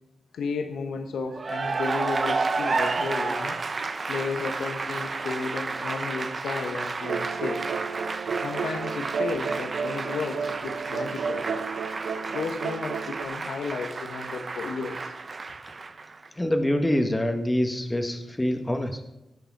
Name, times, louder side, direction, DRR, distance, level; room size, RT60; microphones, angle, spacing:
voice 1, 0.3-3.6 4.1-7.6 8.4-11.5 12.3-15.1, left 4 dB, 85° left, 5 dB, 1.2 m, -33 dB
Cheering / Applause, 1.3-16.3, right 4 dB, 40° right, 0.9 m, -31 dB
sound 1, 7.0-13.2, right 5 dB, 75° right, 0.7 m, -32 dB
voice 2, 16.4-19.0, left 1 dB, 15° left, 5 dB, 1.2 m, -25 dB
17.5 x 6.7 x 4.7 m, 0.94 s
cardioid pair, 80°, 0 cm